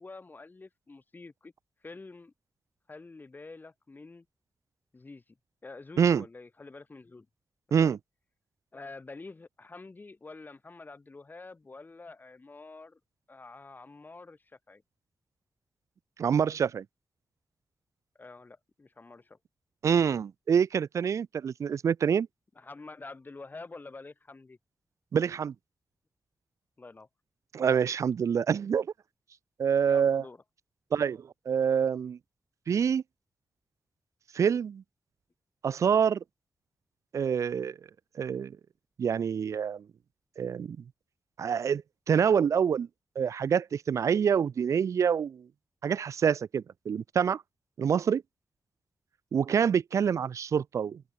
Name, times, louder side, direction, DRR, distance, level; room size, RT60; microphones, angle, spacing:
voice 1, 0.0-1.5 1.8-2.3 2.9-4.2 4.9-5.2 5.6-7.3 7.7-8.0 8.7-13.0 13.3-14.4 14.7-14.8 18.2-19.4 22.6-24.6 26.8-27.1 27.7-27.8 29.9-30.4, left 3 dB, 35° left, 7.0 m, -47 dB
voice 2, 16.2-16.8 19.8-22.3 25.1-25.5 27.5-28.9 29.6-30.2 30.9-32.2 32.7-33.0 34.3-34.8 35.6-36.2 37.1-37.8 38.2-38.5 39.0-39.8 40.4-40.8 41.4-41.8 42.1-42.9 43.2-45.5 45.8-47.4 47.8-48.2 49.3-51.0, right 7 dB, 75° right, 0.8 m, -26 dB
open air
cardioid pair, 70°, 5 cm